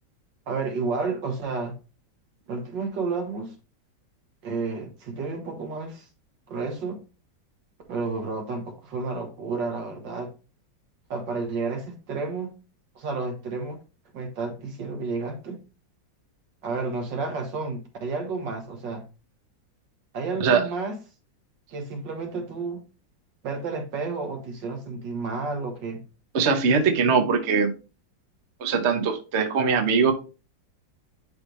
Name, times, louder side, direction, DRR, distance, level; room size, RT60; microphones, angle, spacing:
voice 1, 0.5-1.7 2.5-3.5 4.4-6.1 6.5-7.0 7.9-10.3 11.1-12.5 13.0-13.8 14.1-15.6 16.6-19.0 20.1-21.0 21.7-22.8 23.4-26.0, right 4 dB, 70° right, 4 dB, 2.1 m, -31 dB
voice 2, 26.3-27.7 28.6-30.1, right 5 dB, 45° right, 4 dB, 1.0 m, -21 dB
10.5 x 3.5 x 3.1 m, 0.32 s
omnidirectional pair, 2.0 m